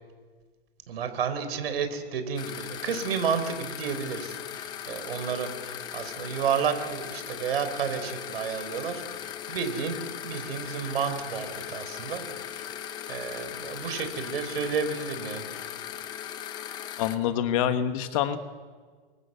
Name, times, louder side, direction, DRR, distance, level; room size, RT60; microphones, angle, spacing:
voice 1, 0.9-10.0 10.2-12.2 12.5-12.6 13.1-15.5, right 6 dB, 70° right, 9 dB, 4.6 m, -31 dB
sound 1, 2.4-17.2, left 10 dB, 15° left, 0.8 m, -38 dB
voice 2, 17.0-18.4, left 10 dB, 35° left, 9 dB, 1.5 m, -26 dB
29.0 x 24.0 x 8.3 m, 1.5 s
supercardioid pair, 170°, 30 cm